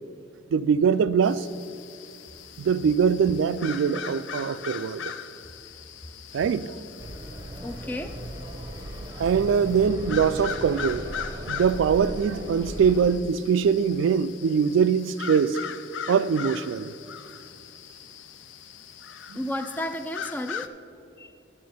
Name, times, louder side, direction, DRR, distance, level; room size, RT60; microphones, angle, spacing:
voice 1, 0.5-1.5 2.6-5.1 6.3-6.8 9.2-11.1 11.5-15.6 16.1-16.9 19.3-19.4, right 6 dB, 75° right, 0.3 m, -23 dB
sound 1, 1.2-20.7, left 7 dB, 75° left, 0.5 m, -40 dB
sound 2, 7.0-13.2, right 1 dB, 20° right, 0.7 m, -37 dB
voice 2, 7.6-8.1 19.3-20.7 21.2-21.3, left 1 dB, 10° left, 0.4 m, -32 dB
10.5 x 6.8 x 5.5 m
head